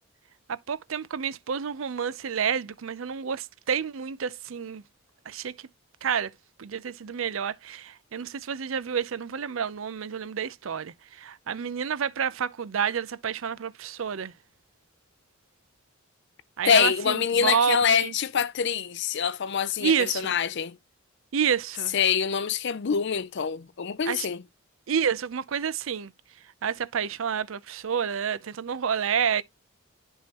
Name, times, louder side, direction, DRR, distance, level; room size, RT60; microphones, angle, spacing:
voice 1, 0.5-4.8 5.3-5.5 6.0-6.3 6.6-14.3 16.6-18.1 19.8-20.3 21.3-21.9 24.1-24.3 24.9-26.1 26.6-29.4, right 7 dB, 65° right, 0.5 m, -29 dB
voice 2, 16.6-20.8 21.9-24.4, left 7 dB, 55° left, 0.5 m, -25 dB
10.5 x 3.7 x 2.9 m
head